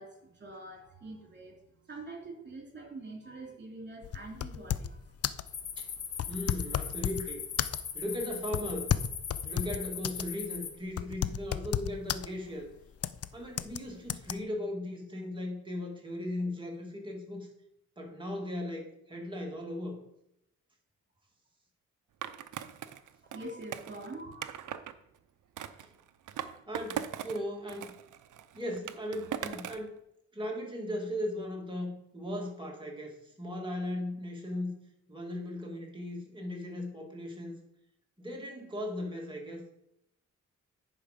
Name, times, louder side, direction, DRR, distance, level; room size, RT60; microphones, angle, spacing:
voice 1, 0.0-1.6 1.9-5.1 23.2-24.4, right 2 dB, 35° right, 0 dB, 3.1 m, -45 dB
sound 1, 4.0-5.0 5.2-5.5 6.1-7.3 7.6-8.0 8.5-10.3 10.6-10.7 11.0-12.3 13.0-13.3 13.6-13.8 14.1-14.3, left 10 dB, 55° left, 0.4 m, -32 dB
sound 2, 5.5-10.7, left 7 dB, 85° left, 1.3 m, -40 dB
voice 2, 6.3-7.4 7.9-8.9 9.4-12.7 13.3-17.5 18.0-20.0 26.7-27.9 28.5-30.0 30.3-34.7 35.1-37.6 38.2-39.7, left 1 dB, 15° right, 0 dB, 2.4 m, -37 dB
Skateboard, 22.2-24.9 25.6-27.4 27.7-29.9, right 10 dB, 80° right, 0.7 m, -40 dB
10.0 x 4.9 x 5.2 m, 0.78 s
cardioid pair, 105°, 30 cm